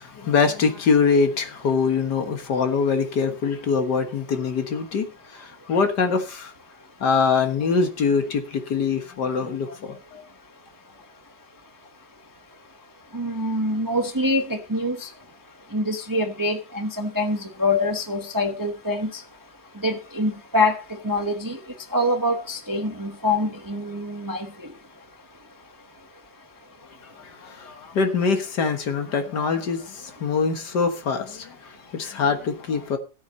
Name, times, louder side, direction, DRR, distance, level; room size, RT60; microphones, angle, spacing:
voice 1, 0.0-5.1 5.3-6.5 7.0-10.2 27.2-31.6 31.9-33.0, left 5 dB, 65° left, 2.0 m, -23 dB
voice 2, 13.1-15.1 15.7-19.2 19.8-21.6 21.9-24.5, left 1 dB, 15° right, 0.8 m, -25 dB
14.0 x 8.4 x 4.1 m
omnidirectional pair, 2.0 m